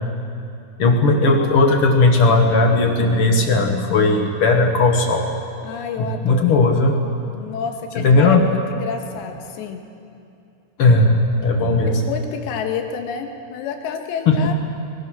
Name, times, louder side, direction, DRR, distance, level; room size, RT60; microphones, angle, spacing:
voice 1, 0.8-5.3 6.0-7.0 7.9-8.4 10.8-12.0 14.2-14.5, left 3 dB, 55° left, 2 dB, 1.5 m, -16 dB
voice 2, 5.6-6.5 7.3-9.8 12.0-14.5, left 6 dB, 75° left, 4 dB, 3.6 m, -29 dB
25.5 x 22.0 x 6.5 m, 2.6 s
omnidirectional pair, 5.3 m